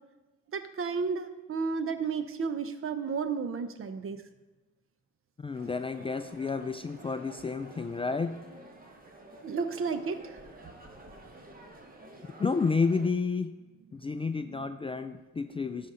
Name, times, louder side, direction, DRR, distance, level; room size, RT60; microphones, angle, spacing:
voice 1, 0.5-4.2 9.4-10.4 14.4-14.7, right 5 dB, 45° right, 10 dB, 0.8 m, -32 dB
voice 2, 5.4-8.3 12.4-13.5 13.9-15.9, left 4 dB, 20° left, 9 dB, 0.3 m, -30 dB
sound 1, 5.5-13.1, right 2 dB, 30° right, 1.4 m, -50 dB
13.0 x 5.2 x 3.8 m, 1.1 s
cardioid pair, 90°, 30 cm